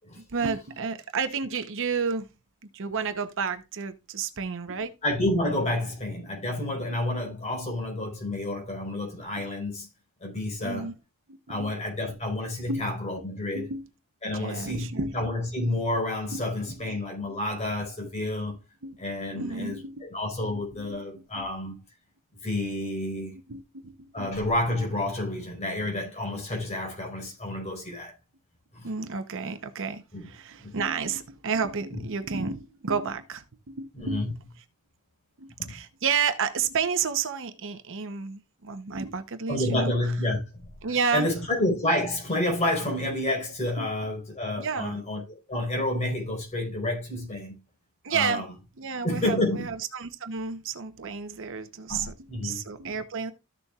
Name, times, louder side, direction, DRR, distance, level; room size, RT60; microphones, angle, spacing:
voice 1, 0.2-2.3 2.7-4.9 10.6-10.9 11.3-11.7 12.7-12.9 13.5-13.9 14.3-15.2 16.3-16.8 18.8-19.0 19.3-20.0 20.8-21.0 21.4-21.5 23.5-24.3 28.8-34.2 35.4-39.9 40.8-41.3 43.8-43.9 44.6-45.0 48.0-48.5 48.8-52.1 52.4-53.3, right 5 dB, 60° right, 0.9 m, -31 dB
voice 2, 5.0-9.9 10.2-10.9 11.5-13.6 14.2-18.5 19.0-19.8 20.0-21.8 22.4-23.4 24.1-28.1 28.7-28.9 30.1-30.2 30.6-30.8 31.9-32.0 33.9-34.3 35.6-35.7 39.5-40.7 41.1-47.6 48.1-48.4 49.0-49.7 51.9-52.6, left 1 dB, 30° left, 4.7 m, -29 dB
14.0 x 6.9 x 2.4 m
head